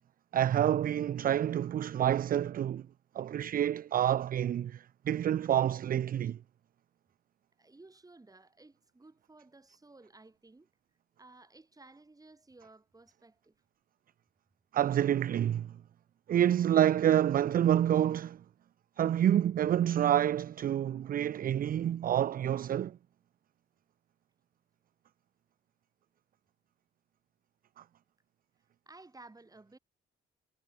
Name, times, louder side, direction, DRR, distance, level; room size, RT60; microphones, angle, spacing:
voice 1, 0.3-2.8 3.2-6.4 14.7-15.7 16.3-18.4 19.0-23.0, right 10 dB, 45° right, 0.4 m, -28 dB
voice 2, 7.6-10.7 11.2-13.6 28.8-29.8, right 2 dB, 20° right, 4.8 m, -56 dB
cardioid pair, 90°, 20 cm